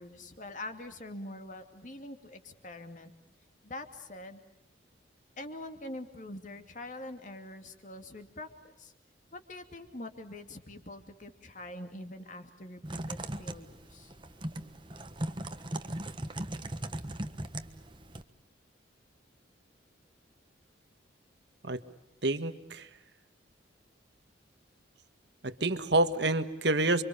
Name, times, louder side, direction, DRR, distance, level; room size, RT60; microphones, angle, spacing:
voice 1, 0.0-3.1 3.6-4.4 5.4-8.9 9.3-14.1, left 2 dB, 40° left, 6 dB, 2.6 m, -44 dB
Typing, 12.8-18.2, right 1 dB, 25° right, 1.3 m, -38 dB
voice 2, 22.2-22.9 25.4-27.0, right 2 dB, 60° right, 10 dB, 1.6 m, -28 dB
29.5 x 25.0 x 7.1 m, 0.85 s
head